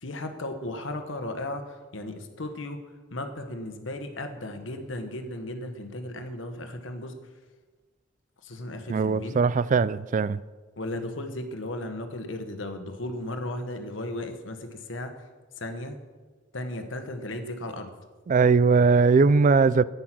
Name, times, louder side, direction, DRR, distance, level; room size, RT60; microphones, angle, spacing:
voice 1, 0.0-2.8 3.1-7.1 8.4-9.4 10.8-15.1 15.6-16.0 16.5-17.9, left 1 dB, 90° left, 1.3 m, -35 dB
voice 2, 8.9-10.4 18.3-19.8, right 4 dB, 40° right, 0.3 m, -20 dB
10.0 x 9.4 x 6.1 m
head